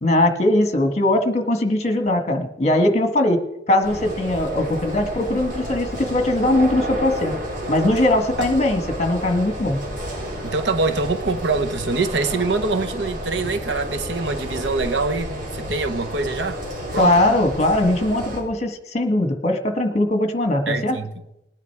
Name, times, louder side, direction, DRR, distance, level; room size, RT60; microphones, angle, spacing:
voice 1, 0.0-3.4 3.7-7.4 7.7-9.8 16.9-21.0, left 1 dB, 40° left, 1.7 m, -20 dB
sound 1, 3.8-18.4, equal, 50° right, 4.4 m, -31 dB
voice 2, 10.4-16.6 16.9-17.1 20.7-21.1, right 3 dB, 85° right, 1.0 m, -24 dB
19.5 x 9.9 x 4.7 m
head